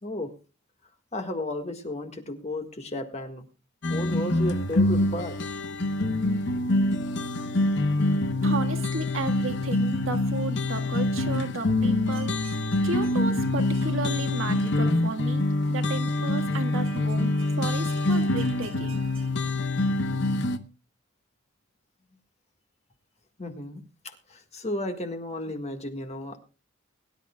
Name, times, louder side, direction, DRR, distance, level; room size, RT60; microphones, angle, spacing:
voice 1, 0.0-0.3 1.1-3.5 3.9-5.4 23.4-26.4, left 1 dB, 30° left, 6 dB, 1.7 m, -34 dB
sound 1, 3.8-20.6, left 2 dB, 55° left, 1.0 m, -25 dB
voice 2, 8.4-19.3, right 3 dB, 65° right, 5 dB, 1.7 m, -34 dB
22.0 x 11.0 x 2.3 m, 0.32 s
head